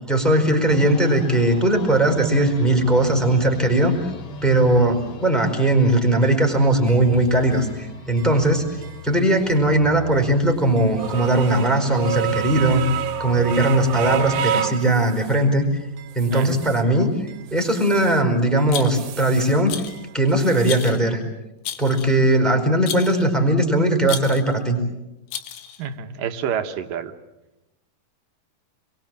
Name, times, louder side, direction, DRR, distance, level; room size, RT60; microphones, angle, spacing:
voice 1, 0.0-3.9 4.4-8.6 9.0-12.8 13.2-15.7 16.1-19.8 20.1-21.2 21.8-24.8, right 1 dB, ahead, 4 dB, 4.3 m, -19 dB
sound 1, 0.7-14.5, left 2 dB, 50° left, 3.0 m, -38 dB
sound 2, 6.2-6.3 6.9-7.0 7.5-7.6 8.2-8.3 8.8-9.0 9.5-9.6 10.1-10.2 10.8-15.5 16.0-16.9 17.3-18.2 18.6-19.6 19.9-20.9, right 10 dB, 85° right, 2.9 m, -30 dB
voice 2, 16.3-16.7 25.8-27.1, right 7 dB, 70° right, 7 dB, 2.8 m, -28 dB
Rattle, 18.7-19.2 19.7-20.1 20.7-21.1 21.7-22.2 22.9-23.3 24.1-24.5 25.3-25.8, left 10 dB, 75° left, 2.9 m, -32 dB
27.5 x 23.0 x 7.7 m, 0.95 s
omnidirectional pair, 4.1 m